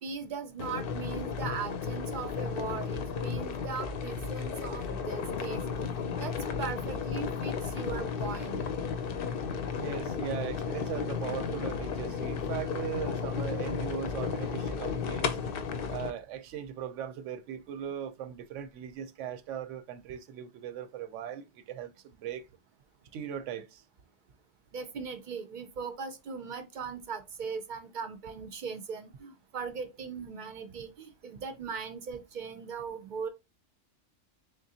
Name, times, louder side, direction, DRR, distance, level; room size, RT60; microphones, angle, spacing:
voice 1, 0.0-5.6 6.2-8.6 24.7-33.3, right 5 dB, 55° right, 0.5 m, -39 dB
sound 1, 0.6-16.1, left 6 dB, 60° left, 0.7 m, -34 dB
voice 2, 9.8-15.4 15.9-22.5 23.1-23.8, right 9 dB, 85° right, 0.9 m, -39 dB
3.8 x 3.2 x 2.7 m
omnidirectional pair, 1.2 m